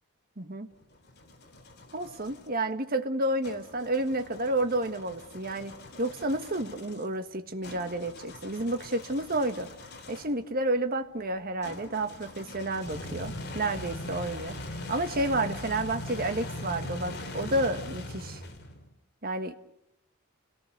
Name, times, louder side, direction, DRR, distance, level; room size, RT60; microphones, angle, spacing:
voice 1, 0.4-0.7 1.9-9.7 10.1-18.4 19.2-19.5, right 1 dB, 45° right, 8 dB, 1.6 m, -30 dB
sound 1, 0.7-2.5 3.4-10.4 11.6-18.9, left 1 dB, 50° left, 3.1 m, -41 dB
29.5 x 18.5 x 6.8 m, 0.83 s
head